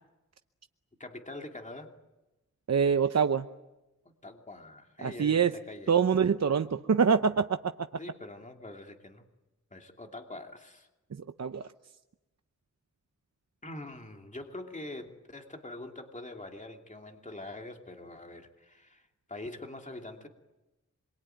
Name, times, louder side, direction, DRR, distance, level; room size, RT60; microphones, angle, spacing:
voice 1, 1.0-1.9 4.0-6.0 8.0-9.2 9.7-10.9 13.6-20.3, left 2 dB, 25° left, 3 dB, 2.8 m, -44 dB
voice 2, 2.7-3.5 5.0-5.5 5.9-7.6 11.4-11.7, right 6 dB, 60° right, 8 dB, 0.8 m, -25 dB
26.5 x 23.0 x 9.2 m, 1.0 s
wide cardioid pair, 80°, 30 cm